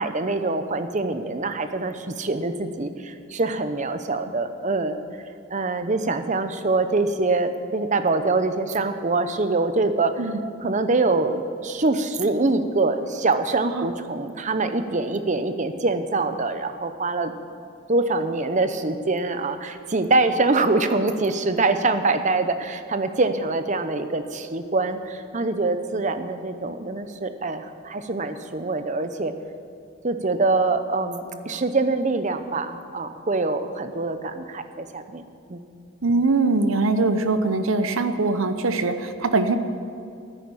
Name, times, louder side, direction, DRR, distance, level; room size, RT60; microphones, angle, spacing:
voice 1, 0.0-5.0 5.5-10.2 10.6-17.3 17.9-29.3 30.0-35.2 35.5-35.7, right 3 dB, 35° right, 9 dB, 0.7 m, -24 dB
voice 2, 36.0-39.6, right 3 dB, 70° right, 9 dB, 0.8 m, -22 dB
10.5 x 10.0 x 8.8 m, 2.4 s
head